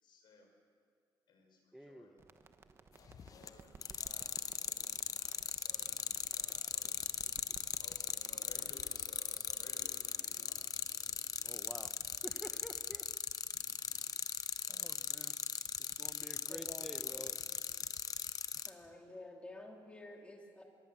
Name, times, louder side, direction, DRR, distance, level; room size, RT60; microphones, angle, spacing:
voice 1, 0.0-0.5 1.3-2.2 3.0-4.3 4.6-7.2 7.8-10.6, left 3 dB, 65° left, 2 dB, 5.8 m, -60 dB
voice 2, 1.7-2.1 11.4-11.9 12.2-13.0 13.9-14.3 14.7-15.4 15.8-17.4, equal, ahead, 9 dB, 1.1 m, -50 dB
sound 1, 2.2-8.8, right 4 dB, 30° right, 1.2 m, -59 dB
sound 2, 3.1-3.5 3.8-18.7, left 7 dB, 45° left, 0.9 m, -38 dB
voice 3, 16.5-17.3 18.7-20.6, left 2 dB, 15° left, 1 dB, 3.2 m, -51 dB
24.0 x 22.5 x 7.5 m, 2.1 s
cardioid pair, 160°, 8 cm